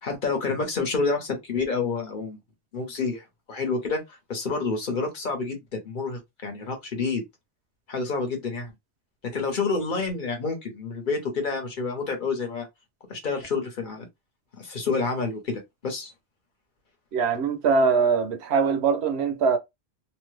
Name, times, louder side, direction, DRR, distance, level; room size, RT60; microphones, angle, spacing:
voice 1, 0.0-2.4 2.7-7.2 7.9-8.7 9.3-12.7 13.1-14.1 14.5-16.1, left 4 dB, 45° left, 1.1 m, -29 dB
voice 2, 17.1-19.6, right 5 dB, 70° right, 0.9 m, -22 dB
2.8 x 2.2 x 3.2 m
omnidirectional pair, 1.2 m